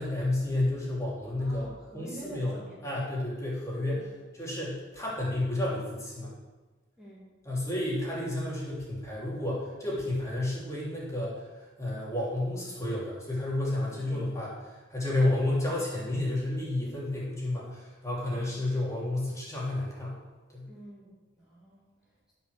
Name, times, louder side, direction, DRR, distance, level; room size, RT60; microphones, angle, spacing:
voice 1, 0.0-1.7 1.9-2.5 2.8-6.4 7.4-20.2 20.5-20.7, left 1 dB, 15° left, -5 dB, 3.1 m, -31 dB
voice 2, 1.4-2.8 3.9-4.1 7.0-7.3 13.9-14.4 20.7-22.3, right 1 dB, 5° right, -8 dB, 2.2 m, -47 dB
16.0 x 5.7 x 6.7 m, 1.2 s
head